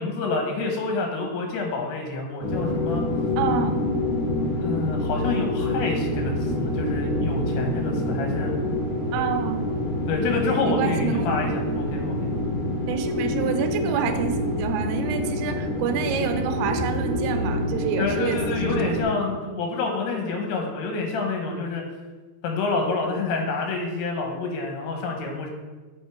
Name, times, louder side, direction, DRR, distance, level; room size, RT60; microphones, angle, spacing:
voice 1, 0.0-3.0 4.6-8.5 10.1-12.3 18.0-21.8 22.4-25.5, left 3 dB, 90° left, 2 dB, 3.2 m, -28 dB
sound 1, 2.4-19.0, left 1 dB, 70° left, 1.3 m, -26 dB
voice 2, 3.4-3.8 9.1-9.6 10.6-11.3 12.9-19.0, right 8 dB, 85° right, 6 dB, 2.7 m, -28 dB
7.9 x 4.4 x 4.6 m, 1.3 s
omnidirectional pair, 4.6 m